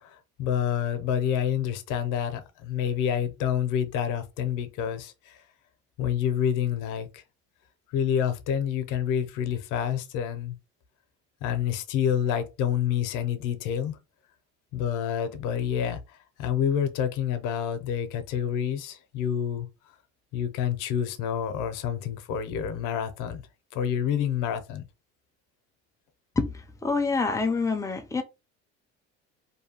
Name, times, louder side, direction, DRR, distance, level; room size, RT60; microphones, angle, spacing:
voice 1, 0.4-5.1 6.0-7.1 7.9-10.6 11.4-14.0 14.7-16.0 16.4-19.7 20.3-23.4 23.7-24.8, left 9 dB, 80° left, 0.7 m, -28 dB
voice 2, 26.8-28.2, left 4 dB, 10° left, 0.4 m, -26 dB
2.8 x 2.2 x 2.8 m
cardioid pair, 115°, 31 cm